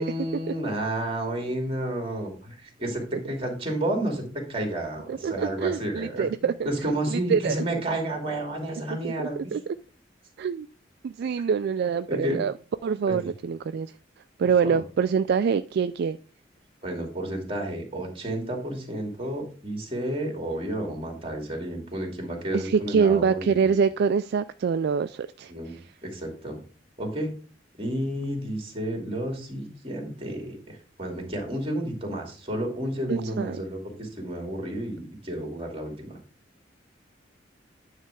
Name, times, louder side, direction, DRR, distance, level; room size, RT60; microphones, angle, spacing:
voice 1, 0.0-9.5 12.1-12.4 13.1-13.2 14.4-14.8 16.8-23.7 25.5-26.6 27.0-27.3 27.8-36.2, right 1 dB, 30° right, 1 dB, 2.4 m, -31 dB
voice 2, 5.1-6.7 7.1-7.6 9.0-9.8 10.4-10.7 11.0-12.5 12.8-13.9 14.4-16.2 22.5-25.8 33.1-33.6, right 6 dB, 60° right, 11 dB, 0.3 m, -25 dB
9.5 x 3.3 x 6.2 m, 0.39 s
head